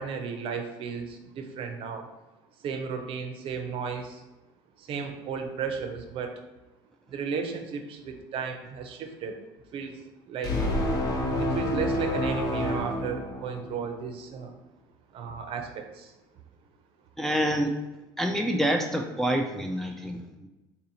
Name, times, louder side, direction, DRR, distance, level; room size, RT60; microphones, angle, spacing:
voice 1, 0.0-2.1 2.6-4.2 4.8-6.4 7.1-9.4 9.7-10.0 10.3-10.6 11.4-14.5 15.1-16.1, right 6 dB, 50° right, 5 dB, 0.5 m, -34 dB
sound 1, 10.4-13.9, left 1 dB, 30° left, 0.7 m, -28 dB
voice 2, 17.2-17.7 18.2-20.2, equal, 5° left, 2 dB, 0.3 m, -27 dB
4.0 x 2.6 x 2.8 m, 1.1 s
supercardioid pair, 100°, 12 cm